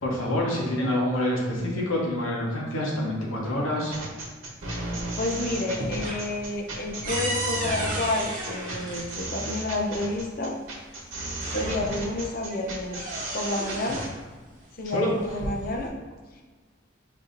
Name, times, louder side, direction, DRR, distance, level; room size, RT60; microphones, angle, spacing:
voice 1, 0.0-3.9 14.9-15.1, left 1 dB, 80° left, -2 dB, 0.9 m, -27 dB
sound 1, 3.9-14.1, right 2 dB, 85° right, 1.3 m, -34 dB
sound 2, 4.6-5.3 5.6-9.6 10.7-10.8 11.2-12.1 12.5-14.2 15.1-15.9, right 1 dB, 40° right, 0.9 m, -35 dB
voice 2, 5.2-10.5 11.5-13.0 13.3-14.0 14.8-15.9, left 2 dB, 45° left, 0 dB, 0.5 m, -30 dB
5.3 x 2.6 x 2.5 m, 1.4 s
head